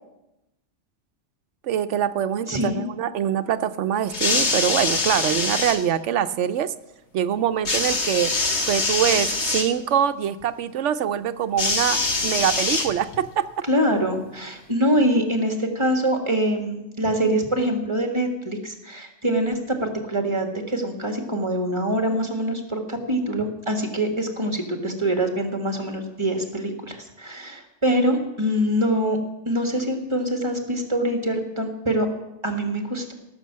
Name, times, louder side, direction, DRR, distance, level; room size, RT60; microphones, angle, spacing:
voice 1, 1.6-6.7 7.1-8.3 8.7-13.5, right 9 dB, 85° right, 12 dB, 1.0 m, -24 dB
voice 2, 2.5-2.8 13.7-29.2 29.4-32.1 32.4-33.1, right 1 dB, 25° right, 3 dB, 1.7 m, -24 dB
sound 1, 4.1-5.8 7.6-9.7 11.6-13.3 14.2-14.3, left 3 dB, 70° left, 1.8 m, -24 dB
17.0 x 6.7 x 7.5 m, 0.94 s
omnidirectional pair, 1.2 m